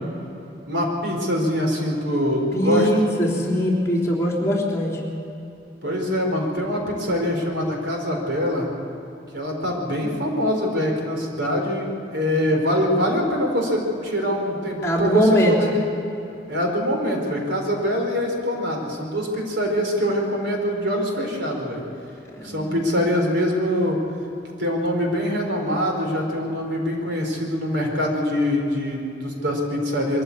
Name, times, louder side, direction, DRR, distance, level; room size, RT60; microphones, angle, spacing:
voice 1, 0.7-2.9 5.8-8.7 9.3-15.9 16.5-21.8 22.4-24.0 24.6-30.2, equal, 70° right, 1 dB, 4.2 m, -24 dB
voice 2, 2.5-5.0 14.8-15.5 22.3-22.9, equal, 15° left, -2 dB, 3.7 m, -21 dB
23.0 x 14.0 x 8.5 m, 2.9 s
head